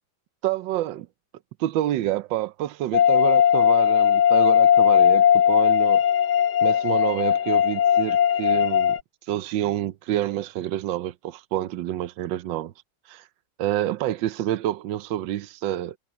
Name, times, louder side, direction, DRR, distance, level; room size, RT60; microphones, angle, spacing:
voice 1, 0.4-1.1 1.6-6.0 6.6-8.9 9.3-12.7 13.1-13.2 13.6-16.0, right 13 dB, 80° right, 1.4 m, -28 dB
sound 1, 2.9-9.0, left 9 dB, 70° left, 1.2 m, -18 dB
omnidirectional pair, 2.0 m